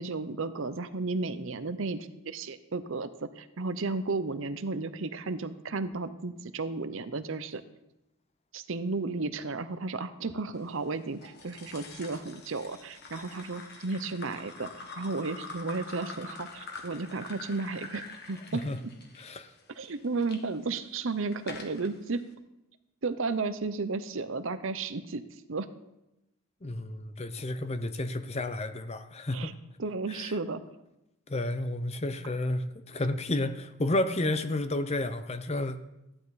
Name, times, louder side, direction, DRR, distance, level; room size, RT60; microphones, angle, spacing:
voice 1, 0.0-7.6 8.5-18.6 19.7-22.2 23.0-25.2 25.5-25.7 29.3-29.5 29.8-30.6, right 3 dB, 60° right, 12 dB, 0.7 m, -33 dB
sound 1, 11.2-20.4 21.0-21.9, left 3 dB, 50° left, 1.7 m, -45 dB
voice 2, 19.2-19.5 26.6-29.5 30.1-30.3 31.3-35.8, left 1 dB, 30° left, 10 dB, 0.7 m, -31 dB
14.5 x 10.5 x 4.1 m, 0.92 s
head